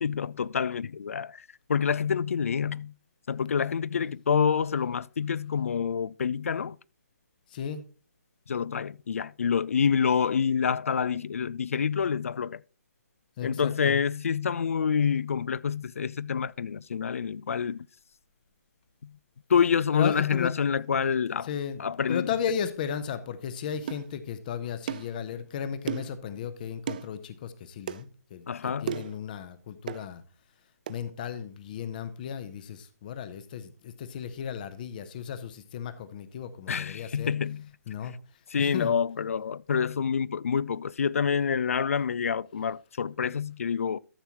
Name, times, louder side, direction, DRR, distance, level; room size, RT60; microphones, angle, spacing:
voice 1, 0.0-2.9 3.3-6.8 8.5-12.6 13.4-17.9 19.0-19.1 19.5-21.5 21.8-22.3 28.5-29.1 36.7-37.7 38.5-44.0, left 6 dB, 55° left, 0.4 m, -27 dB
voice 2, 7.5-7.8 13.4-14.0 19.9-20.5 21.4-30.2 30.9-37.3 37.9-38.2 38.6-38.9, left 8 dB, 30° left, 0.8 m, -35 dB
sound 1, 23.9-24.1 24.9-25.1 25.9-26.2 26.9-27.1 27.9-28.0 28.9-29.2 29.9-30.1 30.9-31.0, right 10 dB, 30° right, 0.3 m, -34 dB
13.0 x 7.0 x 2.9 m
figure-of-eight pair, 140°, 9 cm